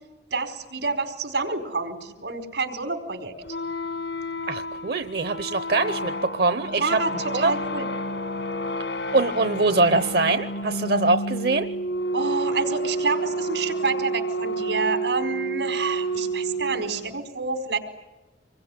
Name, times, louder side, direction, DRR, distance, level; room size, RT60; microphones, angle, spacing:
voice 1, 0.3-3.3 6.7-7.9 12.1-17.8, right 4 dB, 90° right, 6 dB, 4.8 m, -28 dB
sound 1, 3.4-17.2, right 1 dB, 80° left, 1.9 m, -30 dB
voice 2, 4.5-7.0 7.3-7.5 9.1-11.7, right 3 dB, 60° right, 10 dB, 0.9 m, -23 dB
27.0 x 22.5 x 9.9 m, 1.0 s
head